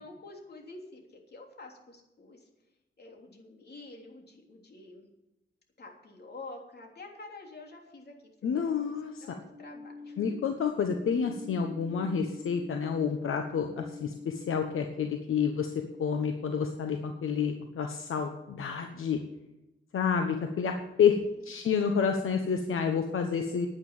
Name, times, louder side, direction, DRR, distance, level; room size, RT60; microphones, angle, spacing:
voice 1, 0.0-2.5 3.0-5.0 5.8-8.9 9.2-10.2 21.2-21.4, left 2 dB, 50° left, 1 dB, 3.3 m, -48 dB
voice 2, 8.4-9.4 10.2-15.7 16.0-19.2 19.9-23.7, left 6 dB, 75° left, 5 dB, 1.1 m, -29 dB
sound 1, 9.5-16.2, left 3 dB, 25° left, 4.3 m, -45 dB
9.9 x 9.8 x 7.2 m, 0.96 s
cardioid pair, 105°, 21 cm